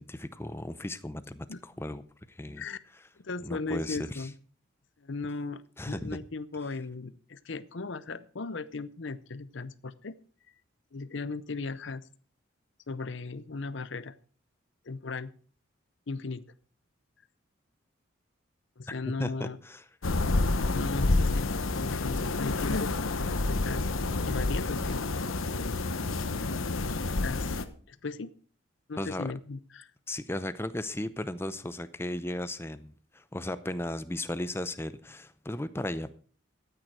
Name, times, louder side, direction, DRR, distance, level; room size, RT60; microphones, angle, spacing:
voice 1, 0.0-2.0 2.3-2.6 3.4-4.3 5.8-6.2 19.2-19.8 29.0-29.3 30.1-36.1, left 1 dB, 10° left, 13 dB, 0.6 m, -36 dB
voice 2, 3.2-4.4 5.0-10.1 10.9-12.1 12.9-14.1 14.8-15.3 16.1-16.4 18.8-19.6 20.7-23.9 24.3-25.1 25.9-26.0 27.2-27.6 27.9-28.3 28.9-29.9, left 3 dB, 65° left, 16 dB, 0.7 m, -37 dB
sound 1, 20.0-27.6, left 2 dB, 80° left, 1.0 m, -29 dB
13.0 x 9.1 x 4.7 m, 0.42 s
head